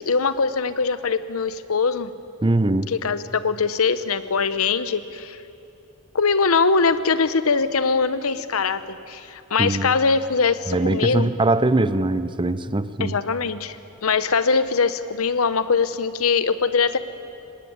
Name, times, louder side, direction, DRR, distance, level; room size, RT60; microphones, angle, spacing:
voice 1, 0.0-2.1 2.9-5.4 6.1-11.3 13.0-13.8 14.0-17.0, left 5 dB, 85° left, 13 dB, 0.9 m, -22 dB
voice 2, 2.4-2.9 9.6-9.9 10.7-13.2, right 2 dB, 25° right, 14 dB, 0.7 m, -21 dB
23.5 x 19.0 x 9.5 m, 2.9 s
head